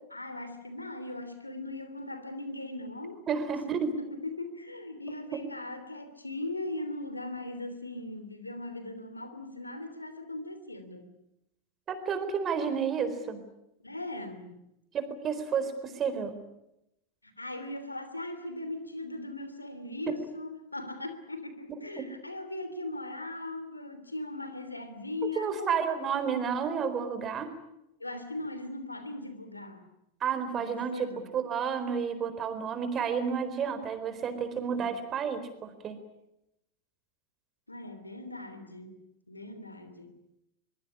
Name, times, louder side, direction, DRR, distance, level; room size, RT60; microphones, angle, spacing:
voice 1, 0.1-3.2 3.6-11.1 13.8-14.6 17.2-26.3 28.0-29.8 30.5-31.3 34.7-35.0 37.7-39.0 39.3-40.1, left 2 dB, 85° left, 3.1 m, -39 dB
voice 2, 3.3-3.9 5.3-5.4 11.9-13.4 14.9-16.4 22.0-22.1 25.4-27.5 30.2-31.1 31.3-36.0, right 6 dB, 25° right, 4.2 m, -31 dB
24.0 x 22.5 x 9.8 m
figure-of-eight pair, 90°, 0 cm